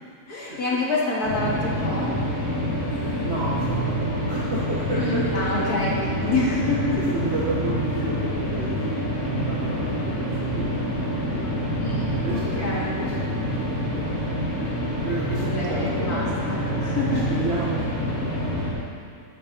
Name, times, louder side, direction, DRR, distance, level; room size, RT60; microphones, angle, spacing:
voice 1, 0.3-2.1 5.0-7.0 11.8-13.0 15.4-17.4, left 2 dB, 85° left, -5 dB, 2.8 m, -27 dB
sound 1, 1.2-18.7, equal, 50° left, 2.8 m, -26 dB
voice 2, 2.9-6.3 7.0-9.1 9.5-11.6 12.1-14.2 14.6-16.5 17.1-18.8, right 1 dB, 50° right, -7 dB, 1.5 m, -33 dB
13.0 x 9.6 x 4.0 m, 2.2 s
omnidirectional pair, 1.6 m